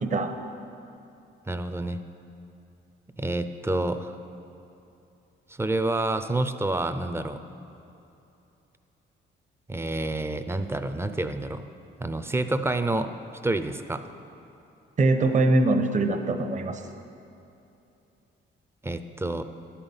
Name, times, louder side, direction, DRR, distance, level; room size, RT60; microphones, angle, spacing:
voice 1, 0.0-0.3 15.0-16.8, right 2 dB, 40° right, 5 dB, 0.8 m, -22 dB
voice 2, 1.5-2.0 3.2-4.2 5.6-7.4 9.7-11.6 12.0-13.1 13.4-14.0 18.8-19.4, right 2 dB, 10° right, 9 dB, 0.5 m, -28 dB
12.0 x 5.7 x 7.0 m, 2.8 s
cardioid pair, 90°, 20 cm